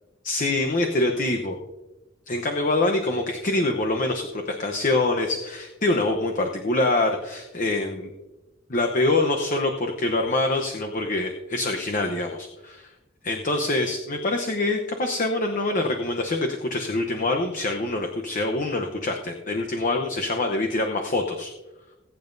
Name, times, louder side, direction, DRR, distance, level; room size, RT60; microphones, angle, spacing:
voice 1, 0.2-1.6 2.3-8.1 8.7-12.9 13.2-21.5, left 2 dB, 45° left, 3 dB, 0.9 m, -25 dB
20.0 x 9.1 x 2.7 m, 1.1 s
head